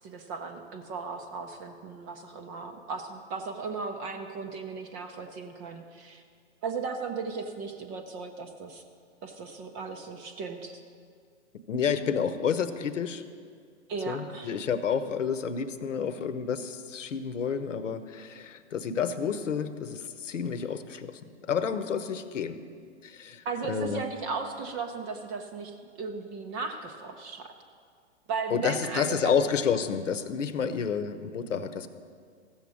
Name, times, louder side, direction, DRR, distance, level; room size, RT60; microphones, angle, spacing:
voice 1, 0.0-6.2 6.6-8.8 9.2-10.8 13.9-14.6 23.5-27.5 28.3-29.4, right 4 dB, 15° right, 5 dB, 0.4 m, -36 dB
voice 2, 11.7-13.2 14.1-22.6 23.0-24.0 28.5-31.9, left 7 dB, 75° left, 11 dB, 1.0 m, -30 dB
14.5 x 7.4 x 6.2 m, 2.2 s
hypercardioid pair, 130°, 37 cm